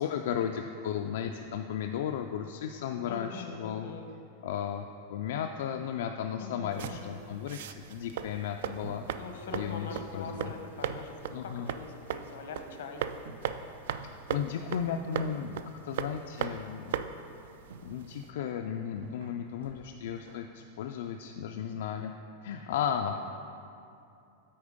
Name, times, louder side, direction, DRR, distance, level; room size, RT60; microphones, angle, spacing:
voice 1, 0.0-3.9 4.4-9.0 9.5-10.5 11.3-11.7 14.3-17.0 17.8-22.1 22.4-23.1, left 8 dB, 70° left, 4 dB, 0.3 m, -35 dB
voice 2, 3.1-4.1 6.4-7.2 9.1-13.0 23.0-23.2, left 4 dB, 90° left, 4 dB, 0.9 m, -42 dB
sound 1, 6.7-18.3, right 8 dB, 65° right, 0.3 m, -39 dB
sound 2, 8.8-21.9, right 4 dB, 90° right, 0.7 m, -53 dB
8.5 x 4.4 x 5.1 m, 2.7 s
supercardioid pair, 170°, 0 cm